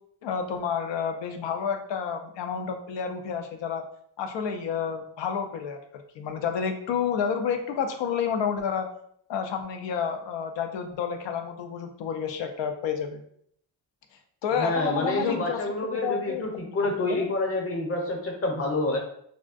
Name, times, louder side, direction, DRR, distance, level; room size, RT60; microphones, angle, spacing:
voice 1, 0.2-3.8 4.2-8.9 9.3-13.2 14.4-15.6 15.9-17.3, left 7 dB, 85° left, 6 dB, 0.6 m, -30 dB
voice 2, 14.6-19.0, left 2 dB, 35° left, 1 dB, 0.8 m, -28 dB
3.5 x 2.1 x 2.4 m, 0.67 s
cardioid pair, 90°, 42 cm